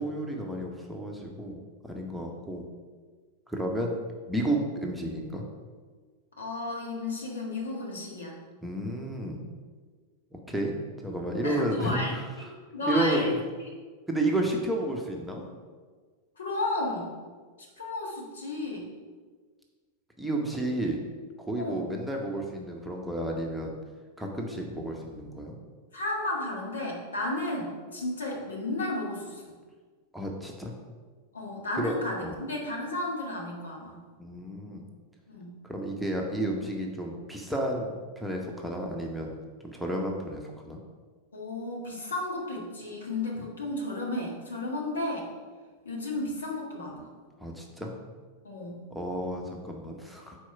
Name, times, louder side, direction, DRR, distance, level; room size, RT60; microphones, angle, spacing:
voice 1, 0.0-2.6 3.5-3.9 4.3-5.4 8.6-9.4 10.3-10.7 11.0-12.2 12.9-13.2 14.1-15.4 20.2-21.0 21.5-23.8 24.2-25.5 30.1-30.7 31.8-31.9 32.2-32.4 34.2-34.8 35.6-39.4 39.6-40.8 47.4-47.9 48.9-50.4, right 1 dB, ahead, 0 dB, 0.8 m, -31 dB
voice 2, 6.4-8.4 11.4-12.1 12.7-13.3 16.4-17.1 17.8-18.9 21.6-21.8 25.9-29.4 31.3-34.0 35.3-35.5 41.3-45.3 45.8-47.1 48.4-48.8, left 2 dB, 70° left, -2 dB, 1.4 m, -33 dB
4.7 x 4.2 x 5.7 m, 1.5 s
figure-of-eight pair, 90°, 0 cm